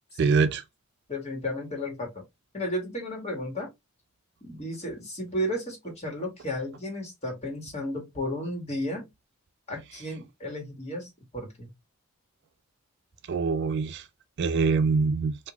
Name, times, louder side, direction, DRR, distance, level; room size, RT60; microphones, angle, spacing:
voice 1, 0.2-0.6 13.3-14.0 14.4-15.4, right 4 dB, 50° right, 0.3 m, -24 dB
voice 2, 1.1-2.2 2.5-3.7 4.4-9.1 9.7-11.7, left 1 dB, 30° left, 1.3 m, -33 dB
3.5 x 2.4 x 2.9 m
head